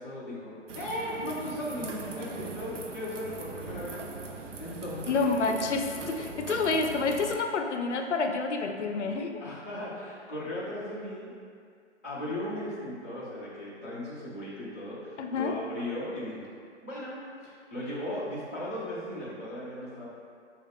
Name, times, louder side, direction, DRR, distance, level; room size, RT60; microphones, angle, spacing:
voice 1, 0.0-4.0 4.6-5.3 9.4-11.3 12.0-16.5 16.8-20.1, left 1 dB, 15° left, -11 dB, 0.4 m, -37 dB
sound 1, 0.7-7.4, right 3 dB, 80° right, 0.6 m, -40 dB
voice 2, 5.1-9.4 15.2-15.5, left 4 dB, 75° left, 4 dB, 0.5 m, -28 dB
5.2 x 2.3 x 3.4 m, 2.2 s
hypercardioid pair, 150°, 36 cm